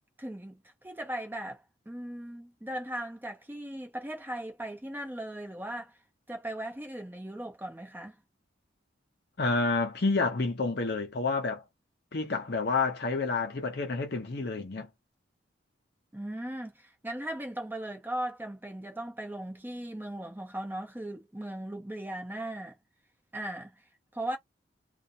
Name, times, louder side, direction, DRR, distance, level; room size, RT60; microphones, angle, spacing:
voice 1, 0.2-6.0 6.3-8.2 16.1-22.7 23.3-23.8 24.1-24.4, right 1 dB, 10° right, 0.6 m, -38 dB
voice 2, 9.4-11.6 12.1-14.9, left 3 dB, 55° left, 0.7 m, -29 dB
2.4 x 2.1 x 2.6 m
head